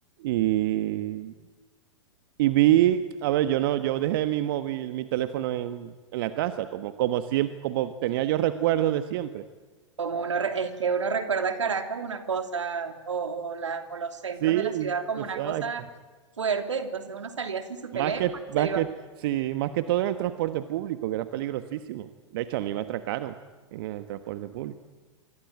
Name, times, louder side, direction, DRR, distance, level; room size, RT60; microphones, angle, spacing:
voice 1, 0.2-1.3 2.4-9.4 14.4-14.9 15.2-15.7 17.9-18.9 19.2-23.4 23.7-24.7, right 13 dB, 45° right, 11 dB, 1.3 m, -27 dB
voice 2, 10.0-15.8 16.4-18.2 18.6-18.8, right 5 dB, 70° right, 7 dB, 3.0 m, -30 dB
26.5 x 25.0 x 8.9 m, 1.4 s
figure-of-eight pair, 100°, 16 cm